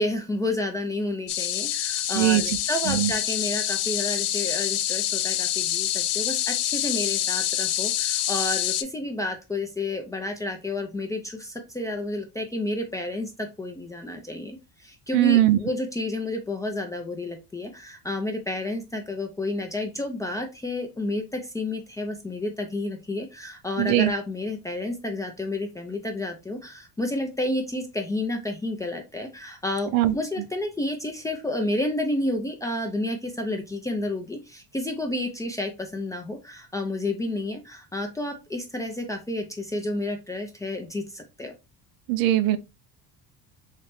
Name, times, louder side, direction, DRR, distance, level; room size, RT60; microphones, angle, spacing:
voice 1, 0.0-41.5, left 2 dB, 10° left, 0.3 m, -30 dB
sound 1, 1.3-8.8, left 12 dB, 80° left, 0.5 m, -26 dB
voice 2, 2.1-2.6 2.9-3.1 15.1-15.6 23.8-24.1 29.9-30.1 42.1-42.6, right 14 dB, 70° right, 0.5 m, -20 dB
3.2 x 2.9 x 3.0 m
cardioid pair, 145°, 36 cm